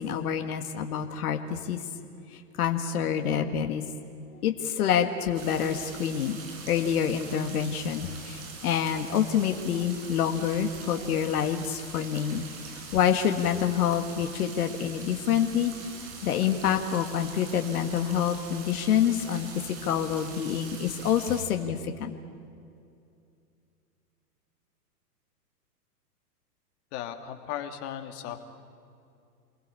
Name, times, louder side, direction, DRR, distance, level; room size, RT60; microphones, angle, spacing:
voice 1, 0.0-1.8 2.6-3.8 4.3-15.7 16.2-19.5 19.8-22.1, left 8 dB, 65° left, 6 dB, 1.9 m, -27 dB
sound 1, 5.3-21.4, right 4 dB, 55° right, 6.5 m, -43 dB
voice 2, 26.9-28.4, left 10 dB, 45° left, 5 dB, 2.7 m, -36 dB
28.0 x 21.5 x 8.7 m, 2.5 s
hypercardioid pair, 125°, 48 cm